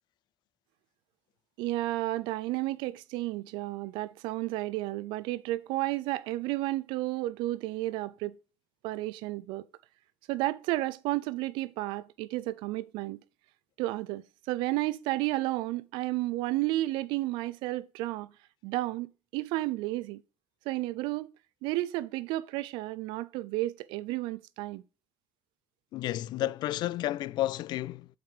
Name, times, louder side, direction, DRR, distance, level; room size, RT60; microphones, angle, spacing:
voice 1, 1.6-8.4 8.8-9.6 10.3-13.2 13.8-18.3 18.6-20.2 20.7-21.3 21.6-24.8, right 18 dB, 85° right, 0.6 m, -32 dB
voice 2, 25.9-28.1, left 14 dB, 65° left, 0.4 m, -31 dB
7.4 x 5.3 x 5.0 m
cardioid pair, 105°, 8 cm